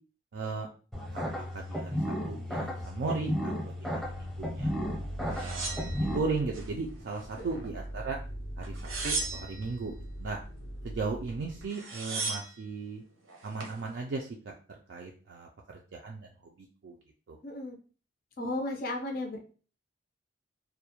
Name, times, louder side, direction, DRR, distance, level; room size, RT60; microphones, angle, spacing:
voice 1, 0.3-0.7 1.1-4.7 5.3-8.2 8.6-8.8 9.0-10.4 10.8-13.0 13.4-14.5 14.9-16.3 16.6-16.9 17.3-17.4, right 4 dB, 60° right, 0 dB, 0.3 m, -37 dB
sound 1, 0.9-6.2, equal, ahead, 0.6 m, -34 dB
sound 2, 4.0-11.7, equal, 90° left, 0.6 m, -42 dB
sound 3, 5.3-6.7 7.1-7.9 8.6-9.7 11.3-11.4 11.6-12.6 13.3-13.8, right 4 dB, 90° right, 0.7 m, -36 dB
voice 2, 17.4-17.8 18.4-19.4, left 1 dB, 45° left, 2 dB, 0.4 m, -34 dB
2.3 x 2.1 x 2.8 m, 0.38 s
head